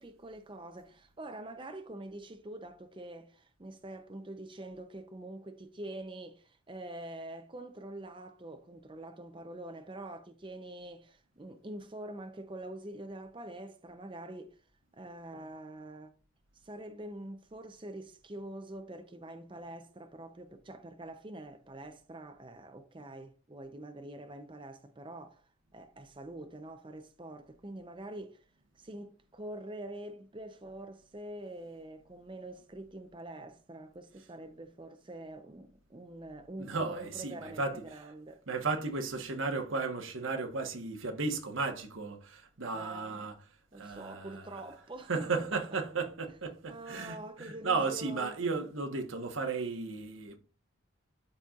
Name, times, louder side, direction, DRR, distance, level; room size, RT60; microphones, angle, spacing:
voice 1, 0.0-14.6 14.9-16.1 16.5-28.4 28.8-38.4 42.7-43.3 43.7-45.4 46.7-48.4, right 1 dB, 25° right, 0.6 m, -45 dB
voice 2, 36.6-37.8 38.5-43.4 43.7-44.6 45.1-50.4, right 4 dB, 80° right, 1.3 m, -34 dB
12.5 x 4.3 x 2.4 m
head